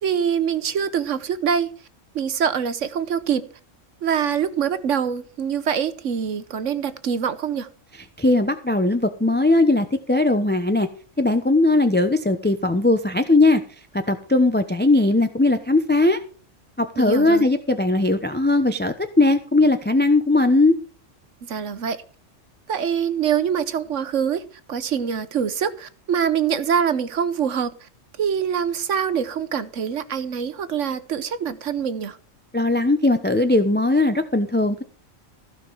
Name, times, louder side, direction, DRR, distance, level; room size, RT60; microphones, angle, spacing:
voice 1, 0.0-1.7 2.1-3.4 4.0-7.7 17.0-17.5 21.5-22.0 22.7-24.4 24.7-27.7 28.2-32.2, right 7 dB, 70° right, 1.3 m, -24 dB
voice 2, 8.2-10.9 11.2-13.6 14.1-16.2 16.8-20.7 32.5-34.8, left 2 dB, 10° left, 0.8 m, -19 dB
15.5 x 5.9 x 7.4 m
omnidirectional pair, 1.3 m